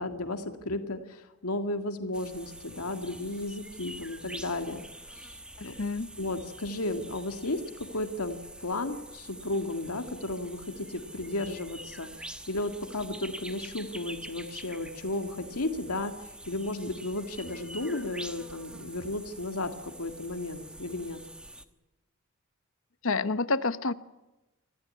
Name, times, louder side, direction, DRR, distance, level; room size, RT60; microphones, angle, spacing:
voice 1, 0.0-4.8 5.2-5.7 6.2-7.6 7.9-21.2, left 2 dB, 85° left, 6 dB, 1.9 m, -34 dB
sound 1, 2.1-21.6, right 1 dB, 5° right, 1.0 m, -46 dB
voice 2, 5.6-6.1 23.0-23.9, left 3 dB, 65° left, 13 dB, 1.0 m, -28 dB
25.5 x 15.5 x 9.6 m, 1.0 s
head